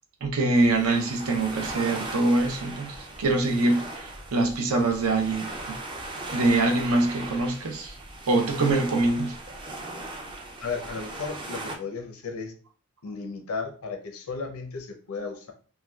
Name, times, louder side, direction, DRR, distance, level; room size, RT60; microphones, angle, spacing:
voice 1, 0.2-5.8 6.3-7.9 8.3-9.3, right 2 dB, 75° right, 0.6 m, -24 dB
sound 1, 0.5-11.8, right 2 dB, 20° right, 0.4 m, -38 dB
voice 2, 10.6-12.5 13.0-15.5, left 4 dB, 85° left, 0.6 m, -34 dB
3.2 x 2.2 x 2.3 m
head